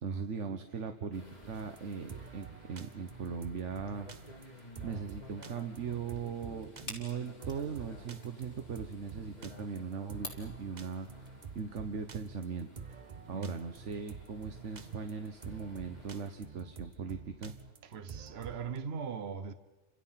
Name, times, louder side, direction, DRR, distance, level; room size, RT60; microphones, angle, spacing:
voice 1, 0.0-4.1 4.8-11.2 11.5-12.8 13.3-17.5, right 6 dB, 75° right, 1.5 m, -39 dB
sound 1, 1.1-16.3, left 1 dB, 35° left, 3.6 m, -55 dB
sound 2, 1.5-18.8, right 6 dB, 40° right, 0.9 m, -48 dB
sound 3, 6.1-11.6, left 2 dB, 65° left, 3.9 m, -51 dB
voice 2, 17.9-19.5, right 6 dB, 60° right, 1.3 m, -39 dB
30.0 x 26.0 x 5.8 m
omnidirectional pair, 1.2 m